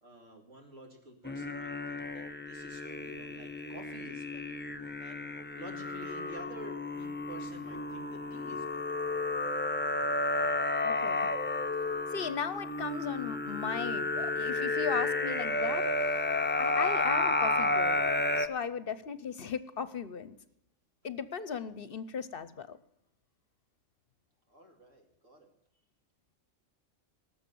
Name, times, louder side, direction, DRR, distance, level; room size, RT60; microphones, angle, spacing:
voice 1, 0.0-5.3 5.6-9.0 24.5-25.5, right 1 dB, 85° right, 3 dB, 2.9 m, -51 dB
sound 1, 1.2-18.5, left 2 dB, 15° left, 0.4 m, -32 dB
voice 2, 10.8-11.3 12.1-16.3 16.6-18.1 18.4-20.3 21.0-22.8, left 6 dB, 55° left, 15 dB, 0.8 m, -37 dB
18.5 x 7.0 x 6.9 m, 0.80 s
omnidirectional pair, 1.3 m